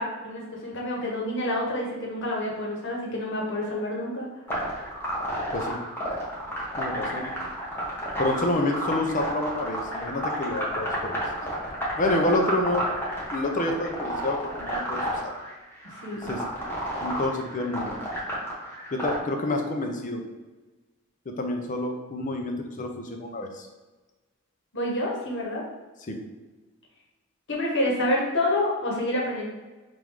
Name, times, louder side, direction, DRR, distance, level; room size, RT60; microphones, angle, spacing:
voice 1, 0.0-4.3 16.0-16.3 24.7-25.6 27.5-29.5, left 1 dB, 60° left, -2 dB, 1.1 m, -28 dB
sound 1, 4.5-19.2, equal, 10° left, 0.9 m, -31 dB
voice 2, 6.8-7.3 8.2-11.1 12.0-12.9 13.3-15.3 16.3-16.4 17.0-18.0 18.9-20.2 21.3-23.7 26.1-26.2, left 1 dB, 40° left, 3 dB, 0.6 m, -28 dB
3.6 x 2.6 x 4.6 m, 1.2 s
head